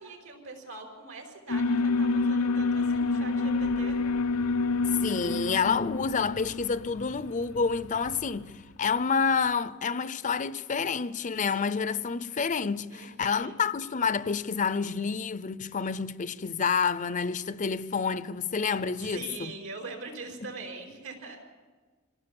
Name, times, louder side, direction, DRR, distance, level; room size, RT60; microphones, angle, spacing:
voice 1, 0.0-4.0 12.9-13.5 19.0-21.4, right 3 dB, 75° right, 4.9 m, -42 dB
Alarm, 1.5-8.6, left 3 dB, 90° left, 0.7 m, -28 dB
voice 2, 5.0-19.5, left 5 dB, 35° left, 0.6 m, -29 dB
26.0 x 17.5 x 7.2 m
head